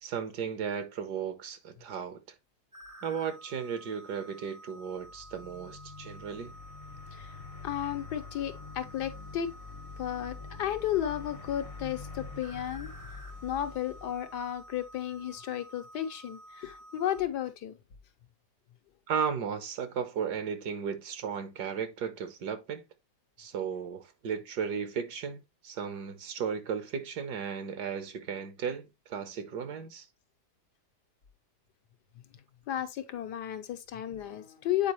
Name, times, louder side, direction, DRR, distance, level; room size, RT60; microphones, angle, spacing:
voice 1, 0.0-2.2 3.0-6.5 19.1-22.8 23.4-30.1, right 7 dB, 75° right, 1.6 m, -35 dB
sound 1, 2.7-17.2, right 1 dB, 45° right, 0.4 m, -51 dB
sound 2, 4.9-15.1, left 4 dB, 50° left, 0.4 m, -46 dB
voice 2, 7.6-9.5 10.0-12.9 13.4-17.8 32.7-34.9, left 11 dB, 80° left, 1.5 m, -33 dB
8.4 x 4.8 x 3.1 m
omnidirectional pair, 1.8 m